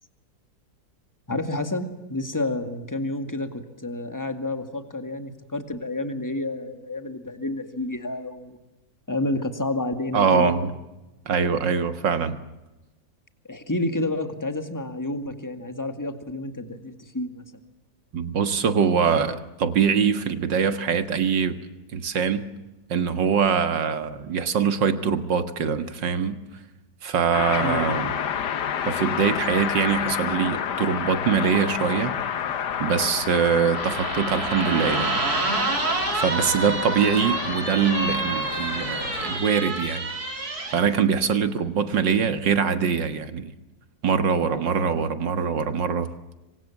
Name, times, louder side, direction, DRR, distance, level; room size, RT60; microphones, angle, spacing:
voice 1, 1.3-8.6 9.1-10.6 13.5-17.4 27.6-27.9 36.6-36.8, left 2 dB, 10° left, 8 dB, 2.0 m, -30 dB
voice 2, 10.1-10.7 11.3-12.4 18.1-21.6 21.9-22.4 22.9-26.4 27.0-28.1 28.9-32.1 32.8-35.1 36.1-40.0 40.7-43.5 44.0-46.1, right 6 dB, 75° right, 10 dB, 2.3 m, -23 dB
sound 1, 27.3-39.4, left 8 dB, 65° left, 1.7 m, -30 dB
sound 2, 33.7-40.8, right 2 dB, 55° right, 4.0 m, -28 dB
27.5 x 24.5 x 7.3 m, 1.0 s
omnidirectional pair, 2.0 m